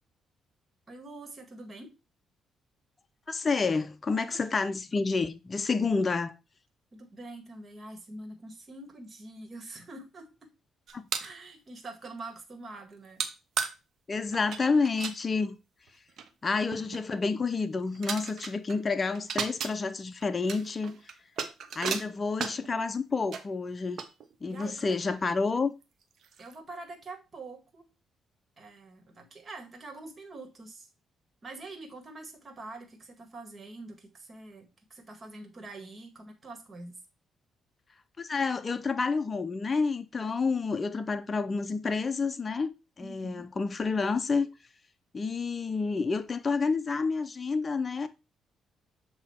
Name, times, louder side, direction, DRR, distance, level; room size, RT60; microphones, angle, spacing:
voice 1, 0.9-1.9 4.2-4.4 6.9-10.5 11.2-13.2 24.5-25.0 26.4-27.8 28.6-30.9 31.4-37.0 43.0-43.4, right 2 dB, 35° right, 1.9 m, -45 dB
voice 2, 3.3-6.3 10.9-11.1 14.1-15.6 16.4-20.9 21.8-24.0 24.4-25.7 38.2-42.7 43.0-44.5 45.1-48.1, left 4 dB, 30° left, 0.5 m, -29 dB
sound 1, 10.9-11.3 13.2-13.3 13.6-13.7 14.3-15.2 15.9-16.0 16.2-16.3 16.7-17.0 17.6-17.7 17.9-18.8 19.1-19.7 20.2-22.8 23.3-23.4 24.0-24.6 25.1-25.2 25.8-25.9 26.2-26.6, right 7 dB, 65° right, 0.9 m, -35 dB
7.6 x 2.9 x 4.3 m
cardioid pair, 90°, 0 cm